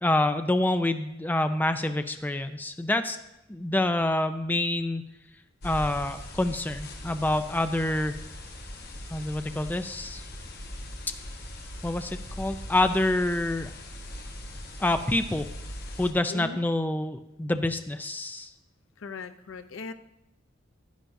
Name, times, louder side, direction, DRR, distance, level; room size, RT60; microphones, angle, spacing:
voice 1, 0.0-3.2 3.5-5.0 5.6-8.2 9.1-10.2 11.8-13.7 14.8-15.5 16.0-18.5, left 1 dB, 10° left, 8 dB, 0.4 m, -27 dB
sound 1, 5.6-16.1, left 1 dB, 55° left, 1.1 m, -40 dB
voice 2, 16.3-16.6 19.0-19.9, left 4 dB, 90° left, 10 dB, 0.6 m, -39 dB
10.5 x 9.9 x 2.6 m, 0.89 s
head